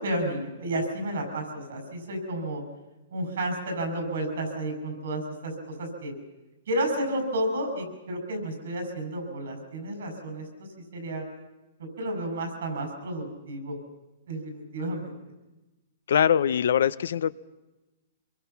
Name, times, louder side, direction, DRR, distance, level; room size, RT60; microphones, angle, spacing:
voice 1, 0.0-2.6 3.1-6.1 6.7-10.7 10.9-11.2 12.0-13.8 14.3-15.2, right 1 dB, 80° right, 4 dB, 7.0 m, -31 dB
voice 2, 16.1-17.3, left 8 dB, 75° left, 17 dB, 0.7 m, -22 dB
25.0 x 22.5 x 5.9 m, 1.1 s
hypercardioid pair, 135°, 0 cm